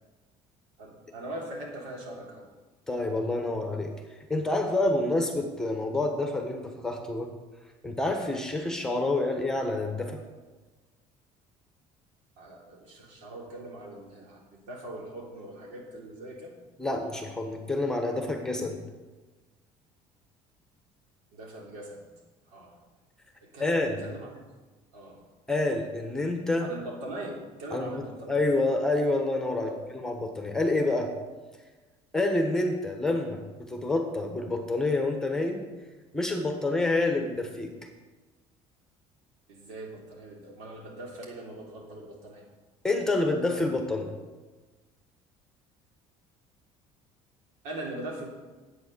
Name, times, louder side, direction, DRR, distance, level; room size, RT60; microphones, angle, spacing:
voice 1, 0.8-2.5 12.4-16.5 21.3-22.1 22.5-22.8 23.4-24.4 24.9-25.2 26.6-28.4 29.6-29.8 39.5-42.4 47.6-48.3, right 1 dB, 85° right, -1 dB, 3.4 m, -41 dB
voice 2, 2.9-3.9 4.3-7.3 7.8-10.2 16.8-18.8 23.6-24.0 25.5-26.7 27.7-28.0 28.3-31.1 32.1-35.7 36.1-37.7 42.8-44.1, left 2 dB, 5° left, 4 dB, 1.2 m, -28 dB
10.5 x 8.5 x 6.8 m, 1.2 s
cardioid pair, 160°, 12 cm